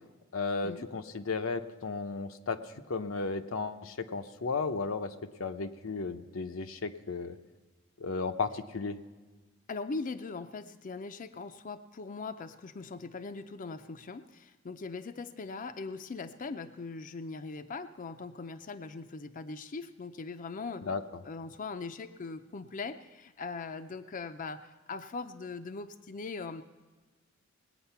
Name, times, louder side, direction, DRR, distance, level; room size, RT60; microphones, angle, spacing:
voice 1, 0.3-2.6 2.9-5.1 5.4-7.4 8.0-9.0 20.9-21.0, left 4 dB, 85° left, 7 dB, 0.8 m, -34 dB
voice 2, 9.7-20.9 21.2-26.6, left 4 dB, 40° left, 8 dB, 0.5 m, -40 dB
20.0 x 8.9 x 5.7 m, 1.3 s
head